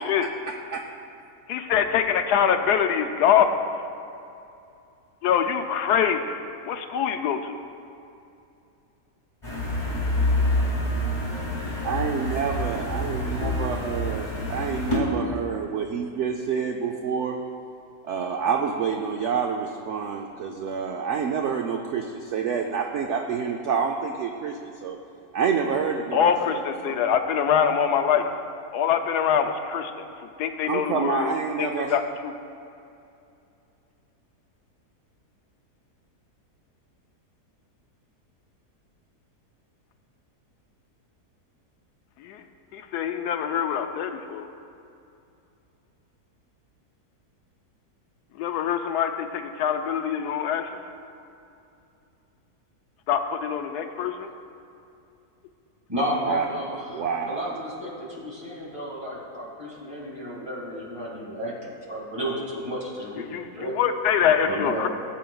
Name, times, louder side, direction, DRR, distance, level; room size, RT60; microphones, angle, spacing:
voice 1, 0.2-0.8 11.8-17.4 18.0-25.0 25.3-27.0 30.7-32.0 56.2-57.5, right 6 dB, 70° right, 3 dB, 0.7 m, -28 dB
voice 2, 1.5-3.5 5.2-6.4 6.7-7.6 26.1-28.3 28.7-30.0 30.4-32.3 42.2-42.4 42.7-44.5 48.4-50.7 53.1-54.3 63.3-63.5 63.8-64.9, left 8 dB, 90° left, 7 dB, 1.2 m, -24 dB
sound 1, 9.4-15.0, left 1 dB, 20° left, 2.3 m, -27 dB
voice 3, 55.9-61.5 61.9-63.7 64.4-64.9, equal, 20° right, -5 dB, 2.1 m, -32 dB
17.5 x 7.4 x 2.3 m, 2.6 s
omnidirectional pair, 1.7 m